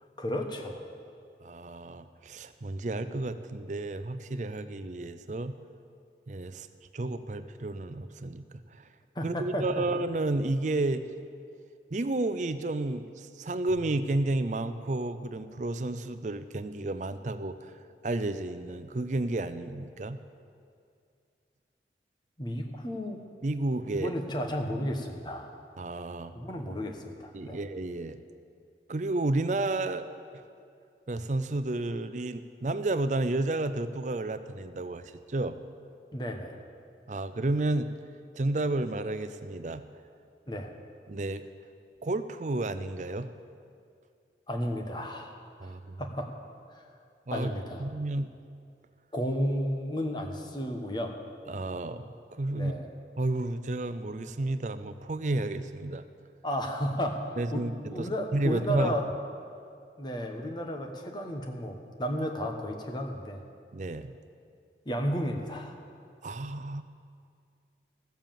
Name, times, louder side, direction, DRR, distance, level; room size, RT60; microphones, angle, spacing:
voice 1, 0.2-0.8 9.1-9.8 22.4-23.2 24.0-25.5 26.3-27.6 36.1-36.6 40.5-40.7 44.5-45.7 46.0-46.3 46.7-46.8 47.3-47.8 49.1-51.1 52.5-52.9 56.4-59.0 60.0-63.4 64.8-65.8, equal, 25° left, 3 dB, 1.1 m, -33 dB
voice 2, 1.4-5.6 6.3-6.7 6.9-8.5 8.7-8.8 9.2-11.1 11.9-17.7 18.0-20.2 23.4-24.1 25.8-26.3 27.3-28.2 28.9-30.1 31.1-35.6 37.1-37.9 38.3-39.8 41.1-41.4 42.0-43.3 45.6-46.0 47.3-47.5 47.8-48.3 51.5-52.7 53.2-56.0 57.4-58.9 63.7-64.1 66.2-66.8, right 2 dB, 45° right, 11 dB, 0.5 m, -31 dB
sound 1, 13.7-16.2, equal, 60° right, 2.0 m, -51 dB
14.5 x 7.2 x 7.5 m, 2.3 s
head